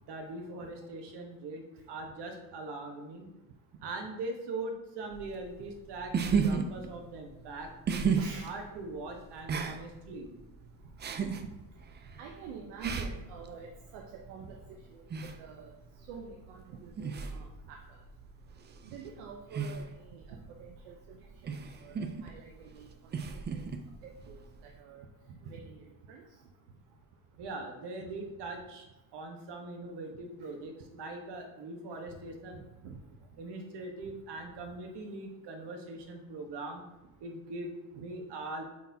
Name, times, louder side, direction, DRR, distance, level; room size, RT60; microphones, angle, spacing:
voice 1, 0.0-3.3 3.8-8.0 8.4-10.3 27.4-28.9 29.1-32.6 33.4-36.8 37.2-38.6, right 2 dB, 55° right, 3 dB, 1.3 m, -41 dB
sound 1, 5.1-24.8, right 6 dB, 25° right, 0.4 m, -36 dB
voice 2, 8.2-8.5 12.2-14.8 15.4-15.7 16.1-18.0 18.8-21.2 21.4-23.6 24.0-24.4 24.8-26.2 32.5-33.0, right 5 dB, 75° right, 1 dB, 0.9 m, -48 dB
8.1 x 4.1 x 2.8 m, 1.0 s
supercardioid pair, 95°, 50 cm